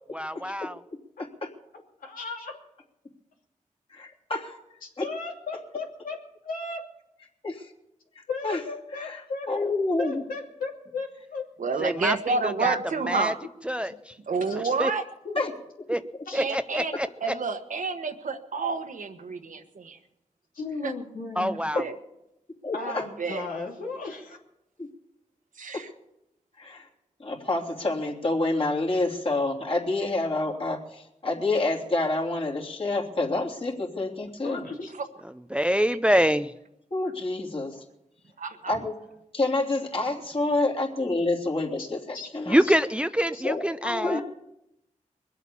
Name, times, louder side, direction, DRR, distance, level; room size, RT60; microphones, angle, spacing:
voice 1, 0.1-0.8 11.8-12.8 13.1-13.3 13.7-14.1 14.8-14.9 15.9-16.0 16.3-17.1 21.4-21.8 35.5-36.5 42.5-44.2, equal, 10° right, 11 dB, 0.5 m, -25 dB
voice 2, 1.2-1.5 3.9-4.6 5.0-5.1 7.4-7.7 8.4-8.6 9.0-9.2 9.5-10.2 15.3-15.5 21.7-21.8 22.6-23.0 24.8-24.9 25.7-25.8 26.6-26.8 27.2-34.6 36.9-37.8 38.7-38.9 39.3-42.6 43.4-43.6 44.0-44.2, left 2 dB, 45° left, -2 dB, 3.1 m, -28 dB
voice 3, 2.0-2.5 5.0-6.2 6.4-6.8 8.3-9.6 10.0-11.4 14.5-14.7 15.2-15.4 16.3-16.4 20.5-21.5 22.7-24.4 34.4-34.9 41.8-41.9 42.1-42.3 42.6-42.7 43.3-43.4 43.8-44.2, left 3 dB, 90° left, 0 dB, 2.9 m, -35 dB
voice 4, 11.6-13.4 14.3-15.0 16.3-16.9 17.2-20.0 20.8-20.9 21.5-21.9 22.8-23.5 25.6-25.9 38.4-38.8, right 4 dB, 70° right, 7 dB, 1.4 m, -29 dB
21.5 x 8.2 x 7.2 m, 0.84 s
cardioid pair, 55°, 14 cm